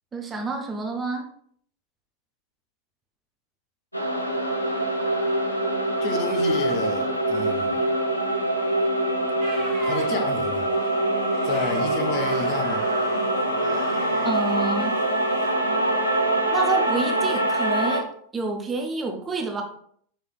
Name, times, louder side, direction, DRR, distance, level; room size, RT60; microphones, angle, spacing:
voice 1, 0.1-1.2 14.2-15.0 16.5-18.0 18.3-19.6, right 3 dB, 20° right, 2 dB, 0.6 m, -28 dB
sound 1, 3.9-18.0, right 1 dB, 85° left, 0.5 m, -24 dB
voice 2, 6.0-7.9 9.8-10.7 11.4-12.9, left 3 dB, 40° left, 4 dB, 0.7 m, -30 dB
sound 2, 9.4-15.0 15.3-15.5, right 2 dB, 50° right, 1.7 m, -40 dB
5.1 x 3.2 x 2.3 m, 0.63 s
figure-of-eight pair, 90°, 0 cm